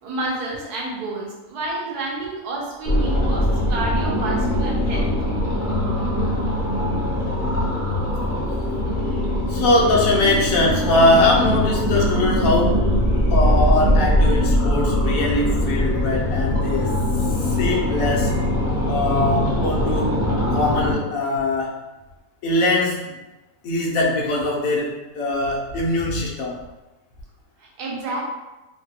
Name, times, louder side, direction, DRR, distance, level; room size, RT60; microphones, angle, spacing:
voice 1, 0.0-5.1 27.6-28.2, right 2 dB, 85° right, -3 dB, 1.3 m, -29 dB
sound 1, 2.8-20.9, left 1 dB, 50° left, 0.6 m, -21 dB
voice 2, 9.5-12.9 13.3-16.9 17.4-18.3 18.9-20.2 20.5-21.7 22.4-23.2 23.6-26.6, left 2 dB, 70° left, -3 dB, 1.1 m, -21 dB
3.2 x 2.2 x 2.8 m, 1.1 s
omnidirectional pair, 1.6 m